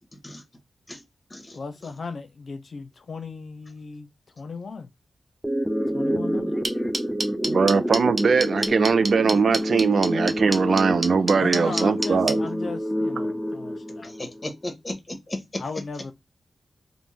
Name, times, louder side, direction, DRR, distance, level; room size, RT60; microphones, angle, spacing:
voice 1, 1.5-4.1 4.4-4.9 5.9-6.5 11.4-14.4 15.6-16.1, left 4 dB, 65° left, 0.5 m, -36 dB
sound 1, 5.4-14.5, equal, 5° right, 0.4 m, -28 dB
sound 2, 6.6-12.3, right 2 dB, 40° right, 0.7 m, -26 dB
voice 2, 7.4-12.4, right 5 dB, 75° right, 0.3 m, -21 dB
voice 3, 14.0-15.6, left 1 dB, 30° left, 1.0 m, -35 dB
2.5 x 2.0 x 3.1 m
cardioid pair, 45°, 0 cm